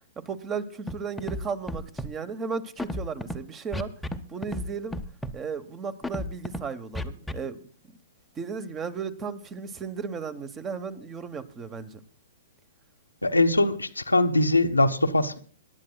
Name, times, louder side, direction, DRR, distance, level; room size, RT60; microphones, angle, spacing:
voice 1, 0.2-3.9 4.3-5.0 5.3-7.6 8.4-12.0, right 5 dB, 20° right, 13 dB, 1.1 m, -35 dB
Scratching (performance technique), 0.9-1.4 1.7-2.1 2.8-3.4 3.7-4.2 4.4-4.7 4.9-5.3 6.0-6.6 7.0-7.3, left 1 dB, 5° left, 0.8 m, -31 dB
voice 2, 13.2-15.4, left 2 dB, 90° left, 6 dB, 1.1 m, -22 dB
26.0 x 11.5 x 2.3 m, 0.43 s
figure-of-eight pair, 115°, 0 cm